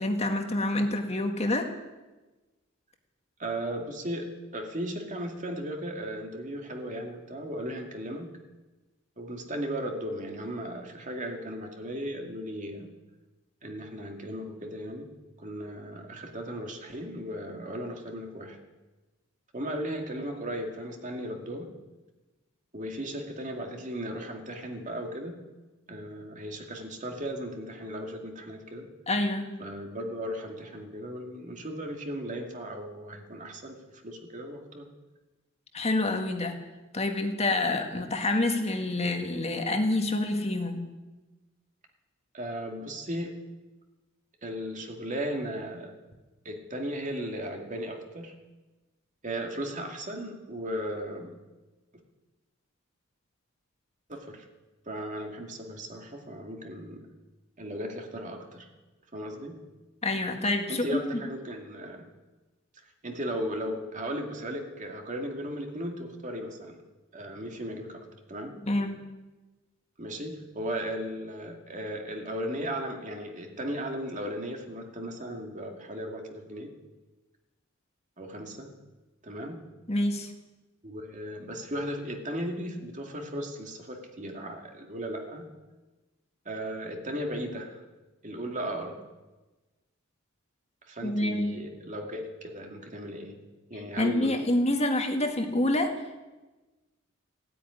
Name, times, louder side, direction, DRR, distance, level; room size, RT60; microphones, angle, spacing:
voice 1, 0.0-1.7 29.1-29.6 35.7-36.6 36.9-40.8 60.0-61.0 68.6-69.0 79.9-80.3 91.0-91.5 94.0-95.9, left 1 dB, 30° left, 4 dB, 1.8 m, -27 dB
voice 2, 3.4-8.3 9.2-12.9 13.6-15.1 15.4-18.6 19.5-21.7 22.7-25.4 25.9-28.9 29.6-34.9 42.3-43.4 44.4-45.9 46.4-48.3 49.2-51.3 54.1-54.5 54.9-57.0 57.6-58.7 59.1-59.5 60.7-62.1 63.0-66.8 67.1-68.5 70.0-76.7 78.2-78.7 79.2-79.6 80.8-85.5 86.5-87.8 88.2-89.0 90.9-93.4 93.7-94.4, equal, 35° right, 2 dB, 2.3 m, -36 dB
16.0 x 9.1 x 9.7 m, 1.2 s
head